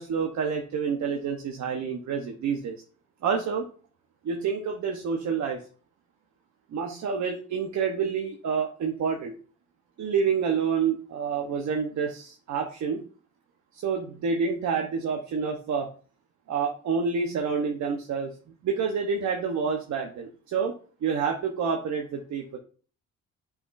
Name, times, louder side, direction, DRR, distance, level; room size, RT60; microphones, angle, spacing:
voice 1, 0.0-2.7 3.2-3.6 4.2-5.6 6.7-9.3 10.0-13.0 13.7-15.9 16.5-18.3 18.6-20.7 21.0-22.6, right 6 dB, 65° right, 3 dB, 1.0 m, -28 dB
8.3 x 5.0 x 2.6 m, 0.41 s
cardioid pair, 90°, 30 cm